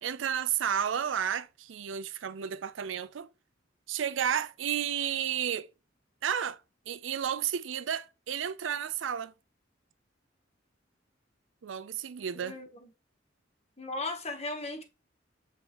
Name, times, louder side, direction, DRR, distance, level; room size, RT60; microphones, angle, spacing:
voice 1, 0.0-3.3 3.9-5.7 6.2-6.6 6.9-9.3 11.6-12.6, right 9 dB, 85° right, 0.5 m, -32 dB
voice 2, 12.3-12.9 13.8-14.8, left 2 dB, 35° left, 1.1 m, -37 dB
7.8 x 4.7 x 3.0 m
head